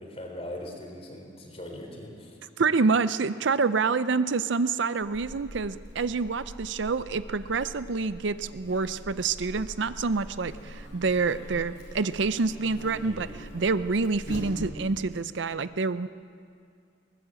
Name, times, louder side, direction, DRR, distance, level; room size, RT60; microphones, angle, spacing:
voice 1, 0.0-2.4 13.0-13.4, left 1 dB, 30° left, 2 dB, 3.6 m, -40 dB
voice 2, 2.6-13.3 13.5-16.1, right 4 dB, 70° right, 14 dB, 0.6 m, -27 dB
Buzz, 5.0-15.0, equal, 70° left, 4.8 m, -43 dB
22.0 x 19.0 x 7.7 m, 2.3 s
head